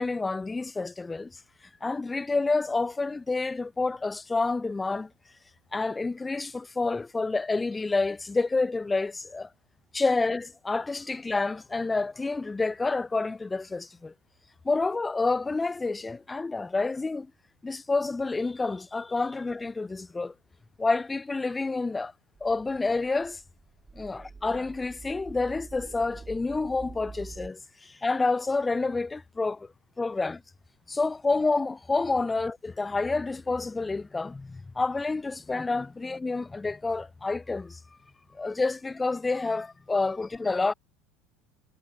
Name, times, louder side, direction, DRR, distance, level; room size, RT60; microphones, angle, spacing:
voice 1, 0.0-1.4 1.8-5.1 5.7-9.5 9.9-14.1 14.6-17.3 17.6-20.3 20.8-22.1 22.4-23.4 24.0-29.7 30.0-30.4 30.9-37.8 38.3-40.7, left 3 dB, 15° left, 0.5 m, -28 dB
sound 1, 22.4-27.5, right 4 dB, 15° right, 4.5 m, -46 dB
supercardioid pair, 125°, 0 cm